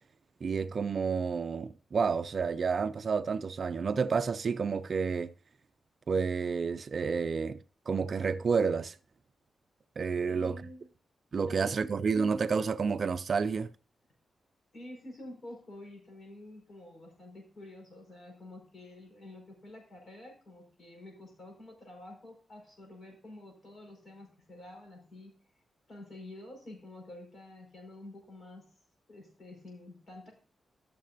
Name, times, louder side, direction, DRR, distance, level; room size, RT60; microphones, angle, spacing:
voice 1, 0.4-5.3 6.1-7.6 7.9-9.0 10.0-10.6 11.3-13.7, right 5 dB, 50° right, 0.3 m, -30 dB
voice 2, 10.3-10.9 11.4-11.9 14.7-25.3 25.9-28.7 29.1-30.3, left 1 dB, 50° left, 5.1 m, -49 dB
14.5 x 6.6 x 2.6 m
wide cardioid pair, 115°, 0 cm